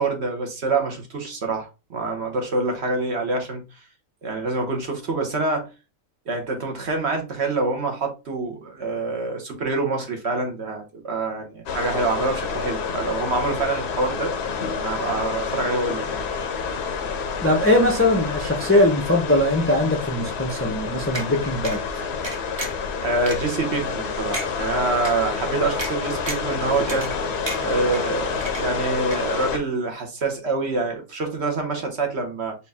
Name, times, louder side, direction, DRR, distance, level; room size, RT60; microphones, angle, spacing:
voice 1, 0.0-3.6 4.2-5.7 6.3-14.3 14.8-16.3 23.0-27.1 27.6-32.5, right 3 dB, 55° right, 1.2 m, -26 dB
sound 1, 11.7-29.6, left 5 dB, 60° left, 0.8 m, -28 dB
voice 2, 17.4-21.8, left 1 dB, 15° left, 0.5 m, -20 dB
sound 2, 21.1-21.3 21.6-21.8 22.2-22.8 23.3-23.4 23.9-24.0 24.3-24.5 25.0-25.1 25.8-25.9 26.3-26.5 26.9-27.2 27.5-28.0 28.4-28.9 29.1-29.2, right 1 dB, 25° right, 0.8 m, -31 dB
4.4 x 2.6 x 3.4 m
omnidirectional pair, 1.4 m